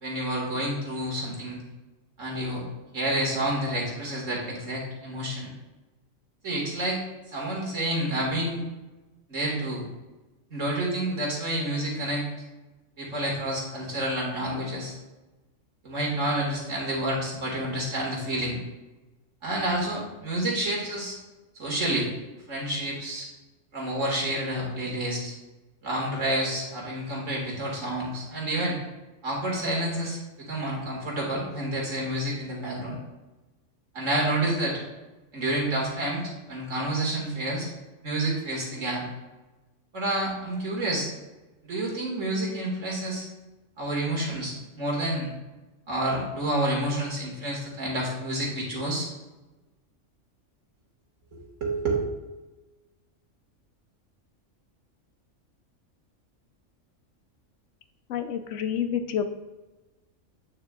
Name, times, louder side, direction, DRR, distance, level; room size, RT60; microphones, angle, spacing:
voice 1, 0.0-1.6 2.2-2.6 2.9-5.5 6.4-7.0 7.3-8.6 9.3-9.8 10.5-12.2 13.0-15.0 15.8-18.6 19.4-21.2 21.5-22.1 22.5-23.3 23.7-25.3 25.8-28.8 29.2-33.0 33.9-34.8 35.3-37.7 38.0-39.1 39.9-41.1 41.6-43.3 43.8-45.3 45.9-49.1 51.3-52.0, right 1 dB, 75° right, -3 dB, 2.4 m, -29 dB
voice 2, 58.1-59.3, left 8 dB, 75° left, 9 dB, 0.9 m, -28 dB
8.6 x 6.6 x 2.4 m, 1.1 s
omnidirectional pair, 1.3 m